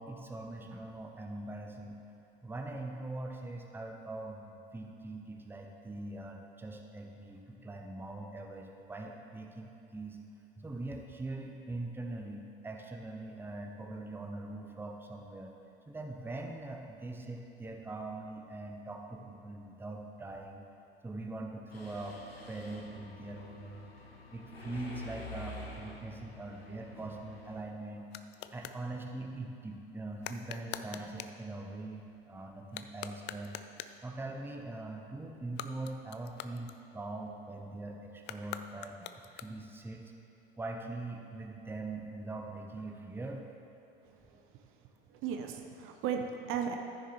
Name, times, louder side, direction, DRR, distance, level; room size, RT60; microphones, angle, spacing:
voice 1, 0.0-2.0 2.4-10.2 10.6-15.5 15.8-20.7 21.0-22.2 22.5-23.9 24.3-28.1 28.5-33.6 34.0-40.0 40.6-43.5, right 2 dB, 5° right, 2 dB, 0.8 m, -42 dB
Mechanisms, 21.7-27.6, left 2 dB, 90° left, 0.9 m, -48 dB
sound 1, 27.1-28.8 30.2-31.4 32.6-34.1 35.4-37.2 38.2-39.8, left 10 dB, 40° left, 0.4 m, -45 dB
voice 2, 44.0-44.4 45.1-46.8, right 7 dB, 45° right, 4 dB, 0.8 m, -36 dB
14.5 x 6.5 x 3.1 m, 2.9 s
figure-of-eight pair, 70°, 29 cm